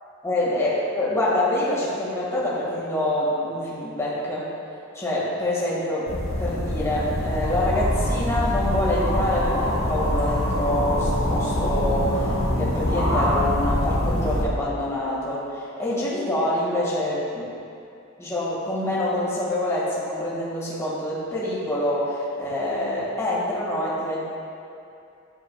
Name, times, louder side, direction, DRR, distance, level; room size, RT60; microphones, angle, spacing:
voice 1, 0.2-4.5 4.9-6.1 6.4-17.5 18.2-24.2, left 1 dB, 15° left, -8 dB, 1.7 m, -26 dB
sound 1, 6.1-14.5, equal, 80° left, 1.4 m, -24 dB
10.0 x 7.2 x 2.3 m, 2.6 s
head